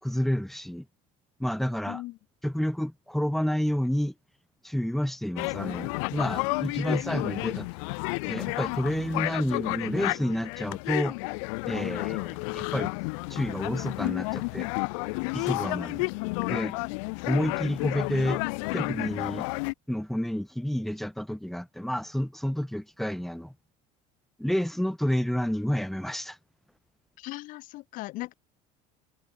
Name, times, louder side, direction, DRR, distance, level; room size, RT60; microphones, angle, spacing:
voice 1, 0.0-0.8 1.4-2.0 2.4-4.1 4.6-7.7 8.3-11.2 11.6-12.9 13.3-14.7 15.3-16.1 16.5-16.7 17.2-18.4 18.7-19.5 19.9-23.5 24.4-26.4, equal, ahead, 3.0 m, -29 dB
voice 2, 1.9-2.2 27.2-28.3, left 19 dB, 60° left, 5.6 m, -38 dB
sound 1, 5.4-19.7, left 32 dB, 85° left, 3.8 m, -31 dB
cardioid pair, 145°, 16 cm